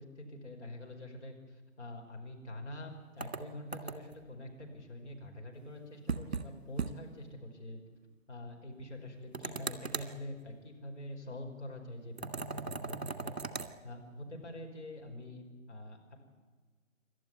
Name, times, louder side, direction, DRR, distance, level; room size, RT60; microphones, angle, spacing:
voice 1, 0.0-7.8 8.3-13.4 13.8-16.2, left 1 dB, 55° left, 2 dB, 5.5 m, -46 dB
sound 1, 3.2-4.2 6.1-6.5 6.8-6.9 7.2-7.3 9.3-10.1 12.2-13.7, right 4 dB, 50° right, 1.9 m, -38 dB
28.0 x 12.5 x 9.6 m, 1.4 s
figure-of-eight pair, 155°, 42 cm